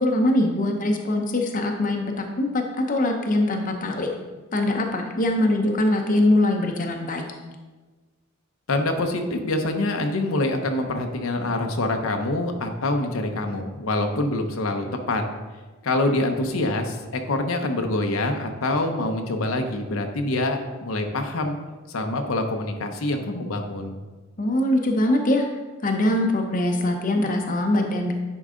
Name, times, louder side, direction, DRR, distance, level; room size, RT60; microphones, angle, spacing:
voice 1, 0.0-4.1 4.5-7.2 24.4-25.4 25.8-28.1, left 1 dB, 40° left, 3 dB, 0.7 m, -22 dB
voice 2, 8.7-15.2 15.8-21.6 21.9-24.0, left 2 dB, 75° left, 4 dB, 0.8 m, -25 dB
10.0 x 4.6 x 3.7 m, 1.3 s
head